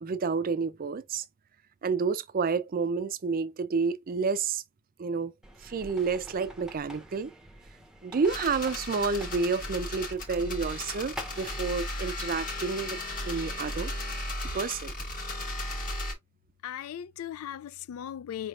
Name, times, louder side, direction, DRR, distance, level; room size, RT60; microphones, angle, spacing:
voice 1, 0.0-1.3 1.8-4.6 5.0-5.3 5.6-7.3 8.0-13.0 13.2-13.9 14.5-14.9, right 5 dB, 40° right, 0.4 m, -29 dB
sound 1, 5.4-11.6, equal, 5° right, 0.7 m, -47 dB
sound 2, 8.3-16.1, left 1 dB, 40° left, 1.3 m, -35 dB
voice 2, 16.6-18.5, left 10 dB, 75° left, 0.3 m, -38 dB
5.1 x 3.2 x 2.4 m
head